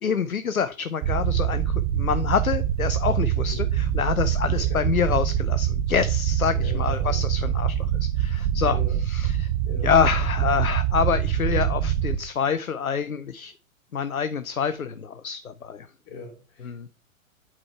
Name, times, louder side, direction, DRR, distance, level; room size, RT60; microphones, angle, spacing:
voice 1, 0.0-9.5 9.8-13.5 13.9-15.9 16.6-16.9, left 7 dB, 85° left, 13 dB, 0.6 m, -26 dB
sound 1, 1.0-12.2, right 10 dB, 30° right, 0.7 m, -24 dB
voice 2, 6.5-7.2 8.6-9.0 9.7-9.9 16.0-16.9, left 3 dB, 40° left, 3 dB, 3.6 m, -40 dB
8.5 x 4.4 x 4.7 m, 0.37 s
figure-of-eight pair, 110°, 41 cm